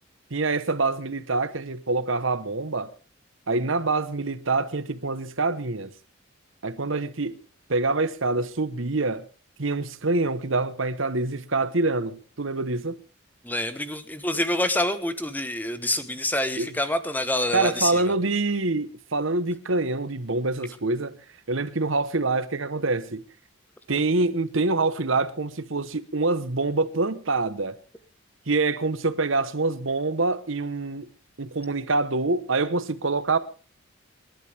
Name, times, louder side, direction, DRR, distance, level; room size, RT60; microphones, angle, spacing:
voice 1, 0.3-2.9 3.5-5.9 6.6-7.4 7.7-9.3 9.6-13.0 16.6-16.7 17.5-21.2 21.5-23.2 23.9-27.8 28.5-31.1 31.4-33.4, right 3 dB, 70° right, 1.2 m, -25 dB
voice 2, 13.4-18.1, left 1 dB, 10° left, 1.2 m, -27 dB
27.5 x 11.5 x 3.5 m
head